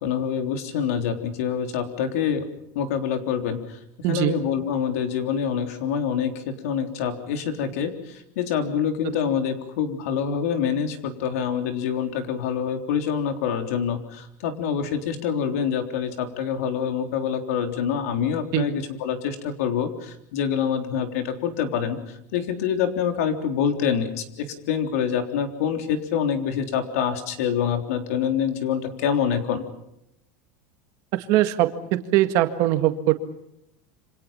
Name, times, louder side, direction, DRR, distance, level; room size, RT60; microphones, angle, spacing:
voice 1, 0.0-2.5 2.8-3.8 4.1-29.6, left 8 dB, 80° left, 6 dB, 3.6 m, -26 dB
voice 2, 4.0-4.3 18.5-18.7 31.1-33.1, right 14 dB, 45° right, 8 dB, 1.9 m, -21 dB
27.5 x 26.0 x 5.8 m, 0.80 s
supercardioid pair, 180°, 8 cm